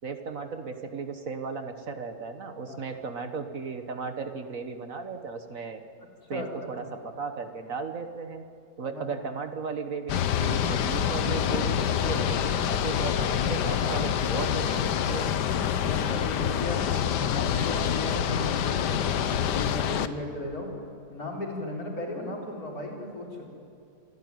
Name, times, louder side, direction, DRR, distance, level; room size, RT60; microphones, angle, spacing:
voice 1, 0.0-5.8 6.3-8.4 8.8-15.3, right 5 dB, 55° right, 7 dB, 1.6 m, -36 dB
voice 2, 6.3-6.9 8.8-9.1 15.7-20.7 21.1-23.5, left 1 dB, 60° left, -1 dB, 4.7 m, -36 dB
sound 1, 10.1-20.1, left 9 dB, 85° left, 1.5 m, -26 dB
26.5 x 13.5 x 9.5 m, 2.5 s
omnidirectional pair, 1.8 m